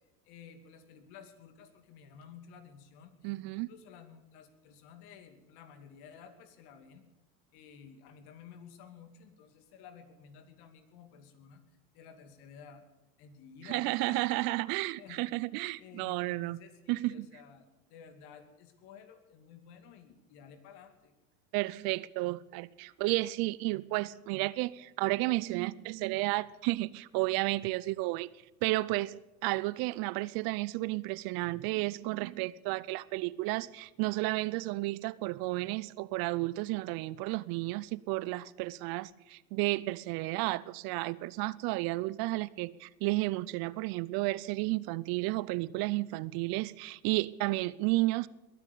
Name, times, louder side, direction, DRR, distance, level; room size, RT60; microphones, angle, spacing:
voice 1, 0.2-7.1 7.5-11.6 11.9-12.8 13.2-14.2 15.0-15.2 15.8-21.1, left 7 dB, 65° left, 2.5 m, -53 dB
voice 2, 3.2-3.7 13.6-16.6 16.9-17.3 21.5-28.3 28.6-29.2 29.4-48.3, right 20 dB, 60° right, 0.7 m, -32 dB
21.5 x 9.5 x 6.9 m
hypercardioid pair, 85°, 42 cm